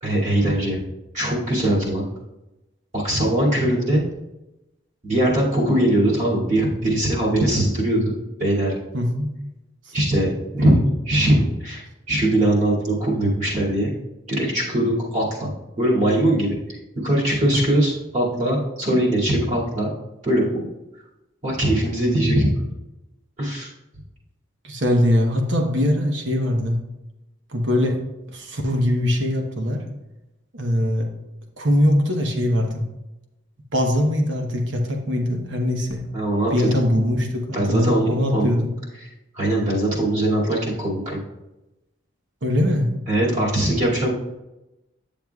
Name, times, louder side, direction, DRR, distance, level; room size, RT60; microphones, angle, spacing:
voice 1, 0.0-0.8 1.1-2.0 2.9-4.0 5.0-8.7 9.9-13.9 14.3-15.5 15.8-16.6 17.0-19.9 20.2-20.7 21.4-22.5 23.4-23.7 36.1-36.7 37.5-38.5 39.4-41.2 43.1-44.1, right 1 dB, 35° right, -6 dB, 2.4 m, -21 dB
voice 2, 8.9-9.3 10.6-10.8 17.5-17.6 18.9-19.0 24.6-26.8 27.5-28.0 28.3-29.8 30.5-31.1 31.6-32.8 33.7-36.0 36.5-38.7 42.4-42.9, left 1 dB, 65° right, 3 dB, 1.0 m, -21 dB
9.2 x 7.0 x 2.3 m, 0.97 s
head